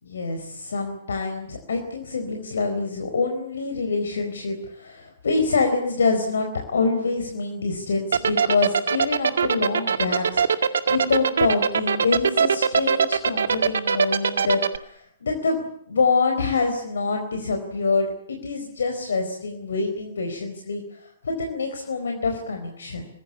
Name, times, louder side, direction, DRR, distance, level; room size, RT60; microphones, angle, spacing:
voice 1, 0.0-23.1, left 4 dB, 65° left, 4 dB, 4.4 m, -26 dB
sound 1, 8.1-14.8, right 6 dB, 65° right, 1.9 m, -20 dB
26.5 x 20.5 x 8.4 m, 0.69 s
figure-of-eight pair, 115°, 0 cm